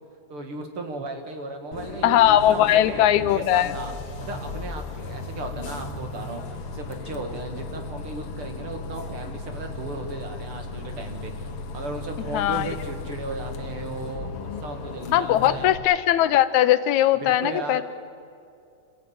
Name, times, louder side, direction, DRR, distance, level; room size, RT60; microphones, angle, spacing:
voice 1, 0.3-2.2 2.5-3.9 4.2-15.7 17.2-17.8, right 2 dB, 50° right, 4 dB, 2.5 m, -36 dB
Bus, 1.7-15.8, left 3 dB, 55° left, 2.0 m, -36 dB
voice 2, 2.0-3.7 12.3-12.7 15.1-17.8, left 12 dB, 80° left, 13 dB, 2.1 m, -19 dB
28.0 x 15.5 x 8.7 m, 2.4 s
omnidirectional pair, 3.4 m